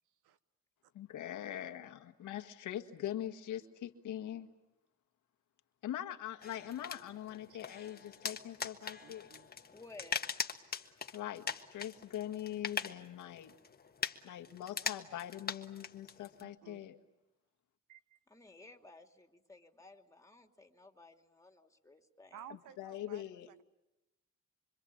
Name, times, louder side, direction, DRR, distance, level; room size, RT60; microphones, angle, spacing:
voice 1, 0.9-4.5 5.8-9.3 11.1-13.6 14.2-17.0 22.8-23.6, left 11 dB, 80° left, 8 dB, 1.8 m, -42 dB
sound 1, 6.4-16.4, left 5 dB, 30° left, 1.5 m, -42 dB
voice 2, 9.0-9.5 16.4-16.8 17.9-18.2 22.3-23.6, right 10 dB, 90° right, 14 dB, 1.2 m, -55 dB
voice 3, 9.7-10.2 18.3-22.4, left 2 dB, 10° left, 5 dB, 2.8 m, -56 dB
25.5 x 25.5 x 8.7 m, 0.96 s
cardioid pair, 90°, 30 cm